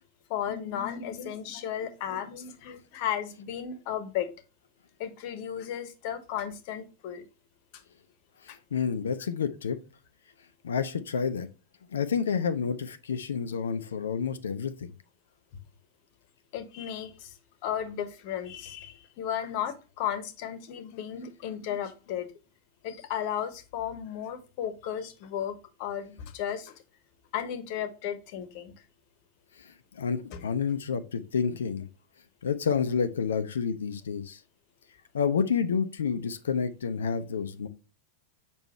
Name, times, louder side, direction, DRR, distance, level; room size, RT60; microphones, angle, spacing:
voice 1, 0.3-4.3 5.0-7.2 8.5-8.6 16.5-17.3 17.6-22.3 22.8-26.8 27.3-28.7 30.3-30.4, left 9 dB, 45° left, 1.0 m, -34 dB
voice 2, 8.4-9.8 10.6-11.5 11.9-14.7 29.6-31.9 32.4-34.4 35.1-37.7, left 6 dB, 65° left, 0.6 m, -29 dB
6.9 x 5.3 x 3.1 m
figure-of-eight pair, 90°, 0 cm